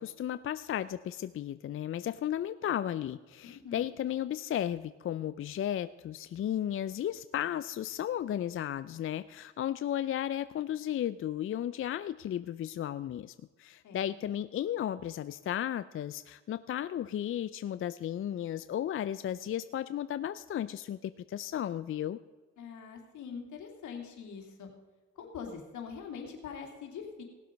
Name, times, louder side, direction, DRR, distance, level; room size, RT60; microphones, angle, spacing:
voice 1, 0.0-22.2, left 11 dB, 45° left, 14 dB, 0.4 m, -34 dB
voice 2, 3.4-3.9 13.8-14.1 22.6-24.7 25.2-27.2, left 6 dB, 80° left, 2 dB, 2.6 m, -43 dB
17.5 x 7.5 x 5.2 m, 1.3 s
cardioid pair, 90°, 30 cm